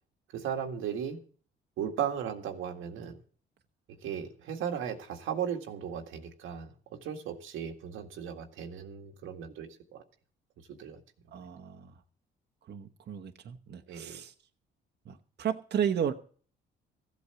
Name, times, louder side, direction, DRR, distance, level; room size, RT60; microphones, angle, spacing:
voice 1, 0.3-1.2 1.8-3.2 3.9-10.0 10.6-11.0 13.9-14.2, right 8 dB, 90° right, 1.9 m, -36 dB
voice 2, 11.3-11.9 12.7-14.3 15.0-16.1, right 8 dB, 60° right, 1.2 m, -33 dB
15.0 x 8.4 x 7.0 m
cardioid pair, 90°, 20 cm